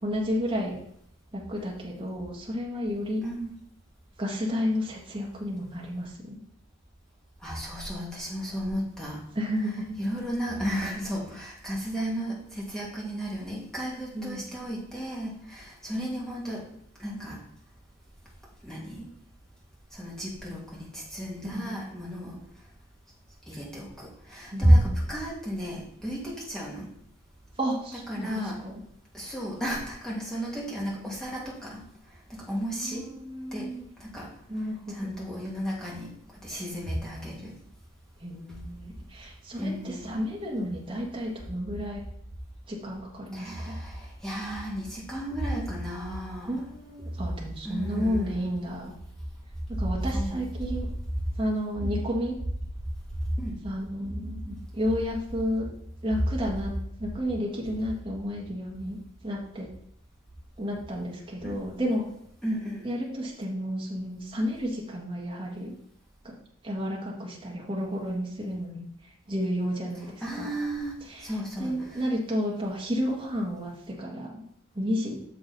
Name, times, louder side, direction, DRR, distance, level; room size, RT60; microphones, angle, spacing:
voice 1, 0.0-0.7 1.3-3.2 4.2-6.4 9.3-10.0 14.1-14.5 21.4-21.8 24.5-25.1 27.6-28.8 32.8-33.9 34.5-35.2 38.2-42.0 42.7-43.8 46.5-48.9 49.8-50.9 51.4-52.3 53.6-55.7 56.0-56.7 57.0-59.0 59.2-59.7 60.6-62.0 62.8-65.7 66.2-66.3 66.6-68.9 69.3-70.5 71.0-71.3 71.6-74.4 74.7-75.2, equal, 25° right, -3 dB, 1.5 m, -32 dB
voice 2, 3.2-3.5 7.4-9.2 10.0-16.7 17.0-17.4 18.6-19.1 19.9-22.4 23.5-26.9 28.1-28.6 29.1-31.8 32.3-33.1 33.5-33.7 34.0-34.3 34.9-36.1 36.4-37.5 39.6-40.3 43.3-46.6 47.6-48.5 50.1-50.5 51.8-52.0 53.4-53.6 61.4-61.6 62.4-62.9 70.2-70.9 71.2-72.0, equal, 5° left, -5 dB, 2.1 m, -32 dB
6.8 x 6.3 x 4.1 m, 0.70 s
head